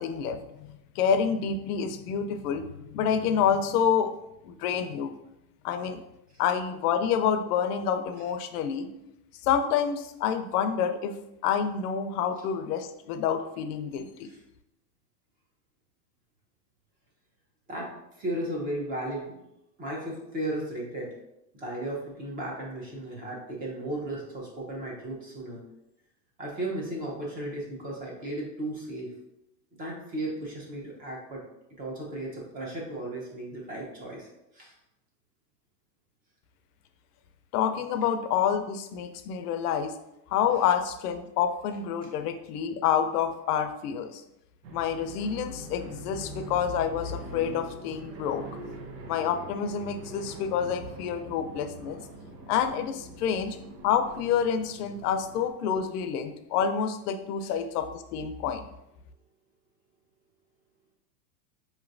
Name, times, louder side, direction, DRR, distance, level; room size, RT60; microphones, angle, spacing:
voice 1, 0.0-4.1 4.4-5.1 5.6-6.0 6.4-8.9 9.4-11.1 11.4-14.3 37.5-40.0 40.3-44.2 44.7-48.4 49.1-52.0 52.5-53.6 53.8-58.7, left 8 dB, 65° left, 8 dB, 0.6 m, -28 dB
voice 2, 18.2-19.4 19.8-21.1 21.5-25.6 26.4-29.1 29.8-31.4 31.8-34.3 34.5-34.7 57.4-57.5, right 1 dB, 20° right, -2 dB, 0.6 m, -35 dB
sound 1, 44.6-55.5, right 2 dB, 80° right, 0.9 m, -44 dB
5.3 x 3.1 x 2.5 m, 0.86 s
supercardioid pair, 160°, 50 cm